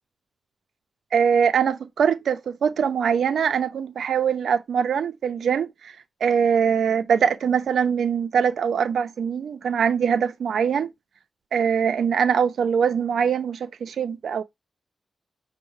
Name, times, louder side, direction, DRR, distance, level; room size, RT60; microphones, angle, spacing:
voice 1, 1.1-5.9 6.2-10.9 11.5-14.4, right 7 dB, 85° right, 0.4 m, -22 dB
5.4 x 2.0 x 4.6 m
wide cardioid pair, 105°, 0 cm